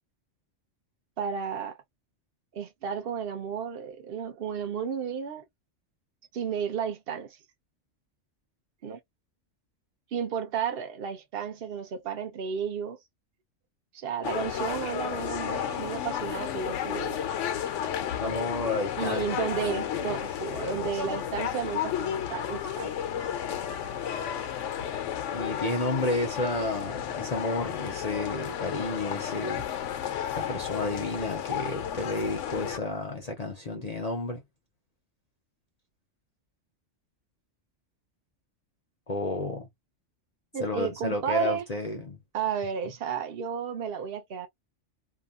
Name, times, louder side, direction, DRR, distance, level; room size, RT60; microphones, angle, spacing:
voice 1, 1.2-1.8 2.5-5.4 6.3-7.4 8.8-9.0 10.1-13.0 13.9-17.3 19.0-22.9 40.5-41.7 42.3-44.5, right 7 dB, 55° right, 0.9 m, -32 dB
sound 1, 14.2-32.8, left 9 dB, 80° left, 0.9 m, -32 dB
voice 2, 18.2-19.3 19.6-20.2 20.5-20.9 25.3-29.6 30.3-34.4 39.1-39.7 40.6-42.2, left 2 dB, 45° left, 0.6 m, -31 dB
2.9 x 2.2 x 2.4 m
omnidirectional pair, 1.2 m